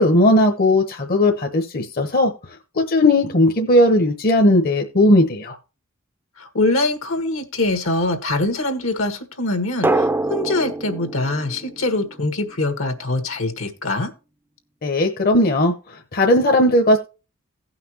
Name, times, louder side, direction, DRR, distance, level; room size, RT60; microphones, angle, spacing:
voice 1, 0.0-2.3 2.8-5.6 14.8-15.7 16.1-17.0, left 1 dB, 45° left, 3 dB, 1.0 m, -17 dB
voice 2, 6.4-14.1, left 2 dB, 75° left, 8 dB, 1.6 m, -23 dB
Drum, 9.8-12.5, right 2 dB, 10° right, 0.5 m, -25 dB
17.0 x 5.8 x 2.9 m, 0.32 s
head